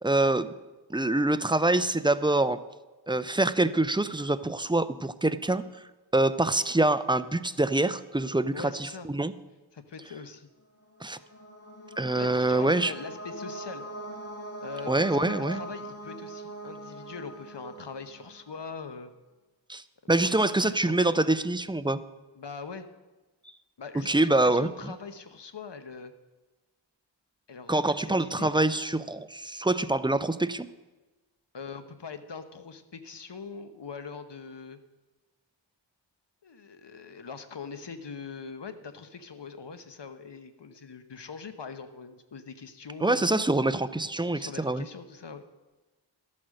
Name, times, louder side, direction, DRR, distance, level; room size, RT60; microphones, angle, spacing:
voice 1, 0.0-0.5 0.9-2.6 3.1-5.6 6.1-9.3 11.0-11.2 12.0-12.9 14.9-15.6 19.7-19.8 20.1-22.0 24.1-24.7 27.7-30.7 43.0-44.8, right 2 dB, 10° right, 13 dB, 0.5 m, -25 dB
voice 2, 8.5-9.1 9.7-10.5 12.1-13.8 14.6-19.1 20.2-21.3 22.3-22.9 23.8-26.1 27.5-28.5 31.5-34.8 36.4-43.3 44.3-45.4, left 5 dB, 60° left, 9 dB, 1.1 m, -42 dB
sound 1, 10.9-18.6, right 1 dB, 30° left, 2.7 m, -41 dB
13.0 x 8.6 x 6.4 m, 1.2 s
wide cardioid pair, 55°, 47 cm